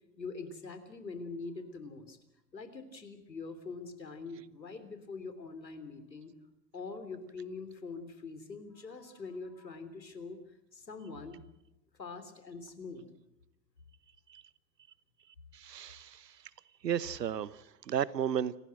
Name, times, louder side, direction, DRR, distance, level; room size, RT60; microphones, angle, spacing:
voice 1, 0.2-2.2 2.5-6.3 6.7-11.4 12.0-13.1, left 4 dB, 85° left, 10 dB, 3.5 m, -44 dB
voice 2, 15.5-16.5 16.8-18.6, right 9 dB, 75° right, 20 dB, 1.1 m, -34 dB
29.0 x 15.0 x 7.8 m, 0.92 s
figure-of-eight pair, 100°, 49 cm